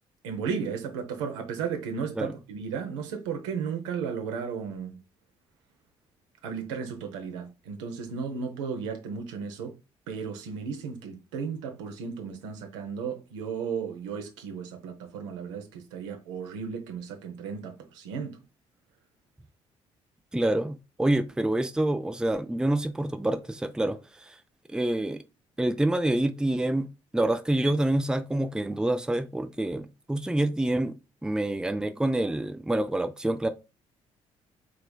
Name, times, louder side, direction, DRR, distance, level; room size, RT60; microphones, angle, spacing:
voice 1, 0.2-5.0 6.4-9.7 10.1-18.4, right 6 dB, 80° right, 0.8 m, -34 dB
voice 2, 20.3-24.4 24.7-25.2 25.6-26.9 27.1-30.9 31.2-33.5, right 1 dB, 5° right, 0.5 m, -27 dB
4.9 x 3.3 x 2.2 m
hypercardioid pair, 45°, 15 cm